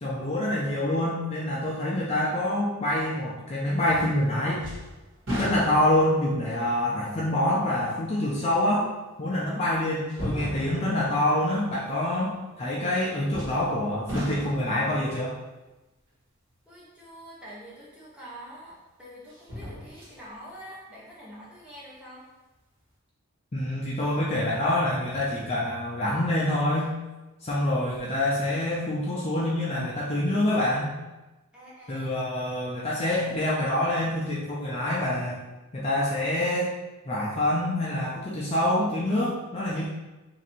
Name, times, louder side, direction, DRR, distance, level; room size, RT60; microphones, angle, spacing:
voice 1, 0.0-4.6 5.4-8.9 9.2-15.3 23.5-26.9 27.4-30.9 31.9-35.4 35.7-36.7 37.1-39.9, left 1 dB, 30° left, -6 dB, 0.4 m, -26 dB
sound 1, 3.9-4.3 4.6-6.2 6.8-6.9 8.7-8.8 10.1-11.0 13.3-13.8 14.1-14.8 17.8-17.9 19.3-20.2 20.6-20.7, equal, 55° right, 1.4 m, -34 dB
voice 2, 16.7-22.3 31.5-32.1, equal, 5° right, -8 dB, 0.8 m, -46 dB
2.6 x 2.5 x 4.2 m, 1.1 s
head